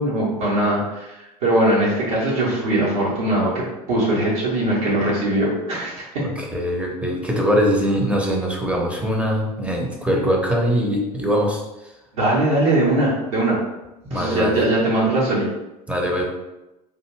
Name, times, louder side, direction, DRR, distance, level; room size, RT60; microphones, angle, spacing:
voice 1, 0.0-3.6 3.9-6.2 12.1-13.6 14.1-15.5, right 1 dB, 70° right, -6 dB, 1.3 m, -21 dB
voice 2, 6.2-11.6 14.0-14.6 15.9-16.2, equal, 5° right, -1 dB, 0.8 m, -22 dB
3.4 x 2.4 x 3.2 m, 0.99 s
figure-of-eight pair, 70°, 20 cm